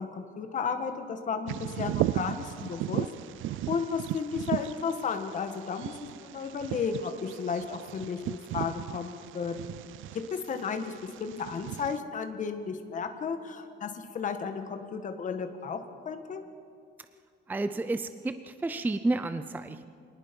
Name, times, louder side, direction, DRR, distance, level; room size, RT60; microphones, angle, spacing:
voice 1, 0.0-3.1 3.7-5.9 6.2-9.7 10.1-15.8 16.0-16.4, left 6 dB, 40° left, 6 dB, 1.5 m, -33 dB
Bird vocalization bird call bird song, 1.5-12.0, right 14 dB, 90° right, 0.4 m, -36 dB
voice 2, 17.5-19.9, right 2 dB, 10° right, 11 dB, 0.5 m, -31 dB
26.0 x 19.0 x 5.3 m, 2.3 s
cardioid pair, 170°, 20 cm